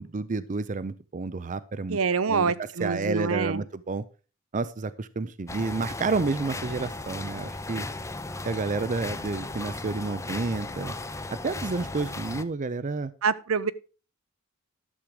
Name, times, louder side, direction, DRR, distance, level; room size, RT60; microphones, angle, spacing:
voice 1, 0.0-2.0 2.3-4.0 4.5-7.9 8.4-10.9 11.3-13.1, right 3 dB, 35° right, 0.5 m, -30 dB
voice 2, 1.9-3.6 13.2-13.7, right 5 dB, 75° right, 0.7 m, -26 dB
sound 1, 5.5-12.4, left 2 dB, 15° left, 0.6 m, -36 dB
12.0 x 7.5 x 4.8 m
head